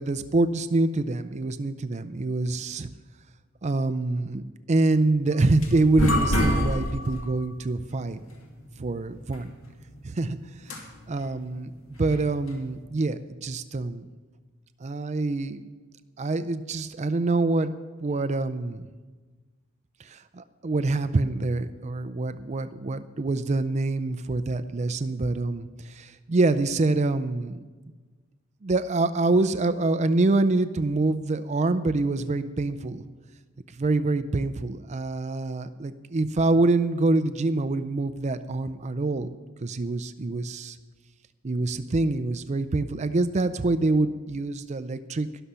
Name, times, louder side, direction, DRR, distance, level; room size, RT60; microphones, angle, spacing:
voice 1, 0.0-2.9 3.6-8.2 8.8-9.5 10.0-10.4 10.7-10.8 11.1-11.7 12.0-14.1 14.8-15.6 16.2-17.7 18.0-18.9 20.0-27.6 28.6-33.0 33.8-40.8 41.4-45.3, right 2 dB, 35° right, 10 dB, 0.4 m, -25 dB
sound 1, 5.3-12.8, left 1 dB, 70° left, 2.5 m, -30 dB
12.5 x 11.0 x 5.6 m, 1.3 s
head